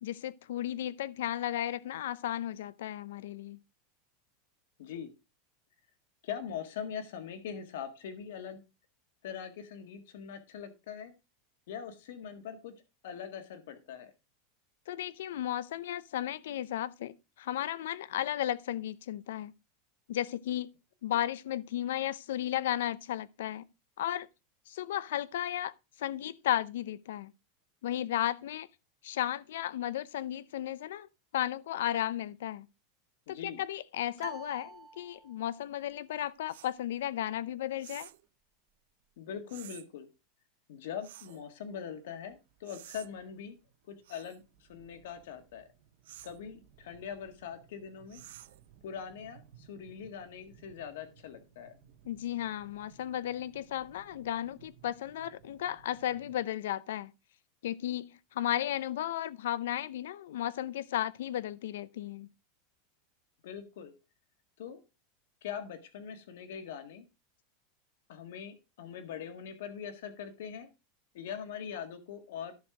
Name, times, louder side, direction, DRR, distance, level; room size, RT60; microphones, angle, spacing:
voice 1, 0.0-3.6 14.9-19.5 20.1-20.7 21.0-23.6 24.0-24.3 24.7-25.7 26.0-27.3 27.8-28.7 29.0-31.1 31.3-32.7 33.3-38.1 52.0-57.1 57.6-62.3, left 12 dB, 85° left, 0.5 m, -34 dB
voice 2, 4.8-5.1 6.2-8.6 9.2-11.1 11.7-12.7 13.0-14.1 21.1-21.2 33.3-33.6 39.2-40.1 40.7-43.6 43.9-45.6 46.2-48.2 48.8-51.7 63.4-63.9 64.6-64.8 65.4-67.0 68.1-70.7 71.1-72.5, left 8 dB, 70° left, 1.7 m, -42 dB
sound 1, 34.2-35.7, right 6 dB, 20° right, 0.8 m, -48 dB
sound 2, 36.5-36.7 37.8-38.3 39.5-39.9 41.0-41.4 42.6-43.1 44.0-44.4 46.0-46.4 48.1-48.7, right 13 dB, 75° right, 0.5 m, -51 dB
sound 3, 41.8-56.4, right 8 dB, 55° right, 1.6 m, -61 dB
11.0 x 6.3 x 3.7 m
supercardioid pair, 175°, 0 cm